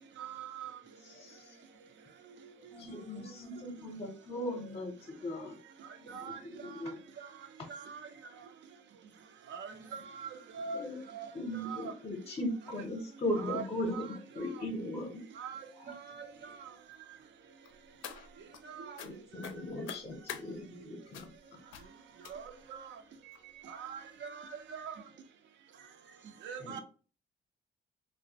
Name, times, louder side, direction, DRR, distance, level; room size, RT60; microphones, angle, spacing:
voice 1, 0.2-0.7 6.1-6.3 7.7-8.0 9.5-9.7 10.2-10.3 10.6-10.8 11.1-11.3 11.6-11.8 13.4-13.6 13.9-14.1 15.4-15.6 18.7-18.9 22.3-22.4 22.7-22.8 23.8-24.5 24.7-25.0 26.4-26.8, right 6 dB, 65° right, 0.5 m, -41 dB
voice 2, 1.1-1.4 2.8-5.6 6.0-7.1 10.7-11.0 11.3-15.2 15.8-15.9 19.0-21.3 26.6-26.8, left 1 dB, 30° left, 0.6 m, -38 dB
voice 3, 2.7-4.1 9.7-10.0 10.5-10.7 15.8-16.5, right 1 dB, 80° right, 0.9 m, -55 dB
sound 1, 17.6-18.6 19.0-19.1 19.4-20.4 21.1-21.4 21.7-21.9 22.2-22.6 23.3-23.4 23.8-24.0 24.3-24.4, left 9 dB, 85° left, 0.4 m, -45 dB
2.5 x 2.1 x 2.8 m
cardioid pair, 90°, 20 cm